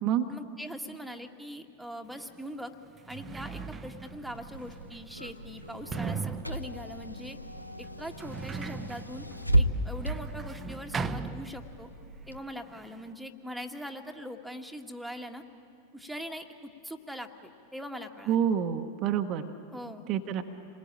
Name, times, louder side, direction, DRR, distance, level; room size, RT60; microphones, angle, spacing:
voice 1, 0.3-2.7 3.1-7.4 7.8-9.2 9.6-11.9 12.3-15.4 15.9-18.5 19.7-20.1, equal, ahead, 3 dB, 1.7 m, -41 dB
Sliding door, 2.2-2.3 2.9-12.0 12.3-13.1, right 5 dB, 20° right, 0.9 m, -39 dB
Car / Engine, 4.1-12.4, right 1 dB, 90° left, 0.9 m, -34 dB
voice 2, 18.3-19.5 20.1-20.4, right 9 dB, 35° right, 6 dB, 1.2 m, -27 dB
28.0 x 21.0 x 8.9 m, 2.5 s
figure-of-eight pair, 90°, 0 cm